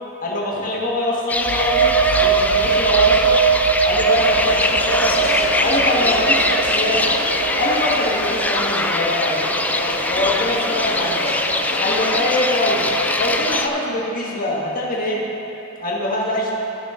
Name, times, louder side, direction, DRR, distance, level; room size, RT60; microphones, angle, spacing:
voice 1, 0.2-3.4 3.8-5.3 5.6-7.0 7.6-11.3 11.8-12.9 13.2-15.2 15.8-16.5, left 1 dB, 40° left, -3 dB, 1.6 m, -23 dB
sound 1, 1.3-13.7, left 2 dB, 5° left, 0.3 m, -23 dB
sound 2, 1.3-8.9, right 6 dB, 80° right, 0.4 m, -21 dB
sound 3, 4.0-13.4, left 1 dB, 65° left, 1.4 m, -28 dB
16.0 x 5.9 x 3.7 m, 2.9 s
head